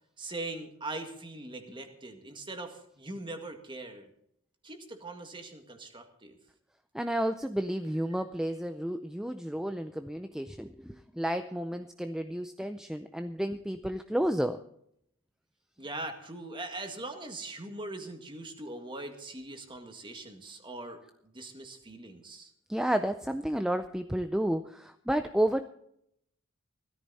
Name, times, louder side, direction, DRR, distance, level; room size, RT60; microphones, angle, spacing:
voice 1, 0.2-4.1 4.6-6.4 15.8-22.5, right 2 dB, 20° right, 5 dB, 1.9 m, -41 dB
voice 2, 6.9-14.6 22.7-25.7, right 1 dB, 5° right, 8 dB, 0.4 m, -31 dB
16.5 x 13.5 x 4.1 m, 0.72 s
head